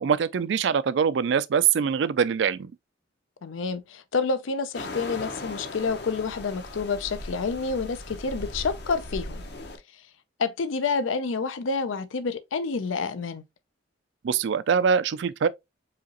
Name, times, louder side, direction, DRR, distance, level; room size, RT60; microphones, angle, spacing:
voice 1, 0.0-2.7 14.2-15.5, right 7 dB, 65° right, 0.4 m, -23 dB
voice 2, 3.4-9.4 10.4-13.4, left 4 dB, 85° left, 0.5 m, -28 dB
sound 1, 4.7-9.8, left 2 dB, 55° left, 0.8 m, -38 dB
4.8 x 2.9 x 2.9 m
head